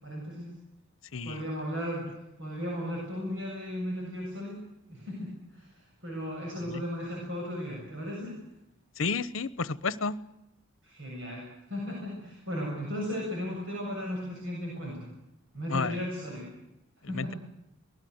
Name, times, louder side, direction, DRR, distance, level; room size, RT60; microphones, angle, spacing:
voice 1, 0.0-0.5 1.2-2.0 2.4-4.6 4.9-5.7 6.0-8.4 10.8-15.1 15.5-16.5 17.1-17.4, equal, 60° right, -2 dB, 7.4 m, -35 dB
voice 2, 9.0-10.2 15.7-16.0 17.0-17.3, left 4 dB, 75° left, 16 dB, 1.0 m, -31 dB
24.0 x 20.0 x 8.0 m, 0.87 s
head